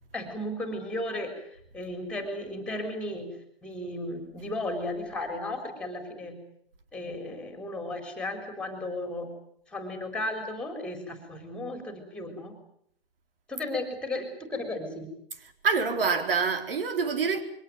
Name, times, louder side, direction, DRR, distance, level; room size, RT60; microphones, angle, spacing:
voice 1, 0.1-1.4 1.7-3.3 3.6-6.3 6.9-9.3 9.7-12.5 13.5-15.1, left 1 dB, 5° left, 4.1 m, -34 dB
voice 2, 15.6-17.4, right 5 dB, 65° right, 4.1 m, -26 dB
23.0 x 18.0 x 9.3 m
hypercardioid pair, 150°, 30 cm